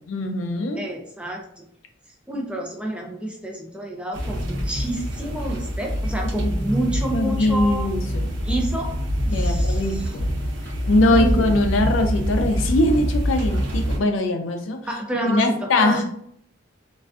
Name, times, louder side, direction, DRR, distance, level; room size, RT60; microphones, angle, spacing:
voice 1, 0.1-0.8 6.4-6.5 6.8-8.4 9.3-10.3 10.9-14.8 15.3-16.0, left 1 dB, 80° left, 5 dB, 0.4 m, -22 dB
voice 2, 0.7-1.6 2.3-7.9 8.4-9.0 9.2-10.1 11.1-11.6 14.9-16.0, right 1 dB, 5° right, 0 dB, 0.3 m, -29 dB
sound 1, 4.1-14.0, equal, 70° right, 0.7 m, -25 dB
2.4 x 2.2 x 2.4 m, 0.68 s
head